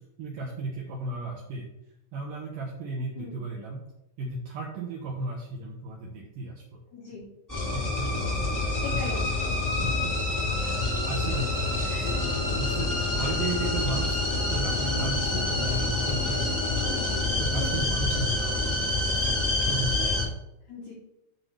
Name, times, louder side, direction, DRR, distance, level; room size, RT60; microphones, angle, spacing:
voice 1, 0.2-1.7 2.1-3.8 4.2-6.8 7.7-9.2 9.8-10.1 10.8-14.2 14.5-17.0 17.4-19.4 19.7-20.4, right 3 dB, 80° right, 0 dB, 2.0 m, -35 dB
voice 2, 6.9-7.3 8.5-9.6 11.2-11.5 11.8-12.4 16.7-17.2 17.6-18.4 20.7-20.9, left 3 dB, 65° left, -3 dB, 2.0 m, -41 dB
sound 1, 7.5-20.2, left 2 dB, 5° left, 2.2 m, -27 dB
sound 2, 12.0-17.5, left 8 dB, 85° left, 2.1 m, -38 dB
7.6 x 4.2 x 6.6 m, 0.86 s
omnidirectional pair, 5.1 m